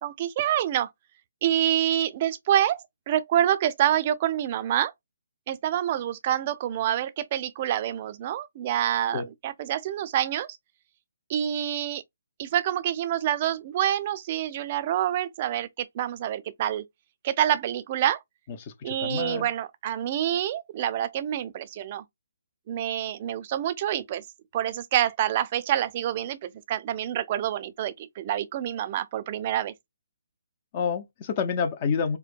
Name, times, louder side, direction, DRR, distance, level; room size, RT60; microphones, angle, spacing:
voice 1, 0.0-0.9 1.4-2.8 3.1-4.9 5.5-10.6 11.3-12.0 12.4-16.8 17.2-18.2 18.8-22.0 22.7-24.2 24.5-29.7, right 11 dB, 35° right, 0.5 m, -27 dB
voice 2, 18.6-19.5 30.7-32.2, left 6 dB, 35° left, 0.6 m, -28 dB
4.5 x 2.1 x 2.5 m
figure-of-eight pair, 145°, 0 cm